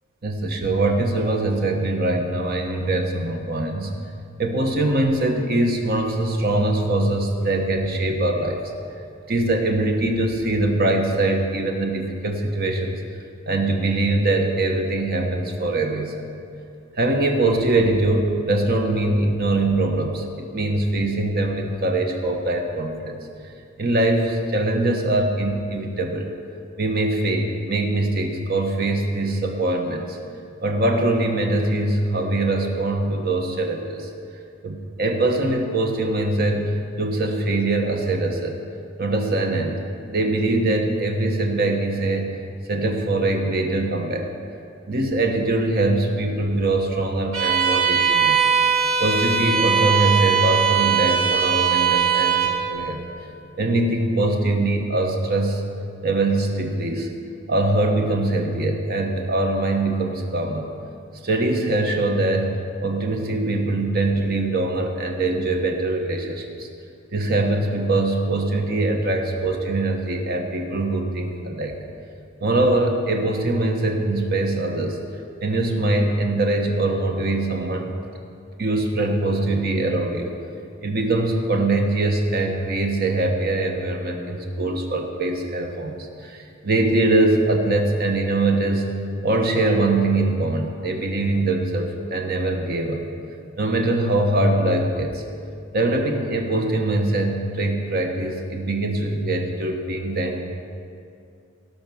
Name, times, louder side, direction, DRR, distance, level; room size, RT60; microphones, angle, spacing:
voice 1, 0.2-4.0 4.4-8.6 9.3-13.0 13.5-16.1 17.0-23.2 23.8-26.3 26.8-30.2 30.6-34.1 34.6-38.6 39.0-39.8 40.1-42.3 42.7-44.3 44.9-48.4 49.0-53.1 53.6-55.6 56.0-57.1 57.5-60.7 61.2-66.7 67.1-71.8 72.4-75.0 75.4-77.9 78.6-80.4 80.8-88.9 89.2-93.0 93.6-95.2 95.7-100.4, right 2 dB, 50° right, 3 dB, 1.2 m, -22 dB
Bowed string instrument, 47.3-52.6, right 7 dB, 85° right, 2.0 m, -20 dB
16.5 x 5.9 x 6.1 m, 2.4 s
head